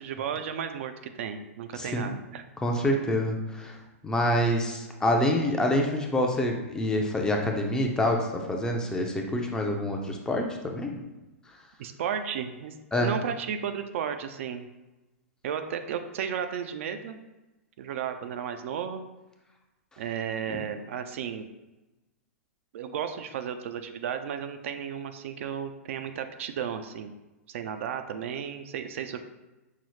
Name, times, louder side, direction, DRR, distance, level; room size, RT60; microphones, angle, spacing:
voice 1, 0.0-2.4 11.8-14.7 15.4-17.2 17.8-19.1 20.0-21.5 22.7-27.1 27.5-29.2, right 8 dB, 65° right, 8 dB, 0.3 m, -34 dB
voice 2, 1.8-2.1 2.6-3.8 4.0-11.0 12.9-13.1 20.5-20.6, left 1 dB, 10° left, 2 dB, 0.4 m, -26 dB
5.6 x 2.0 x 3.1 m, 1.1 s
hypercardioid pair, 125°, 8 cm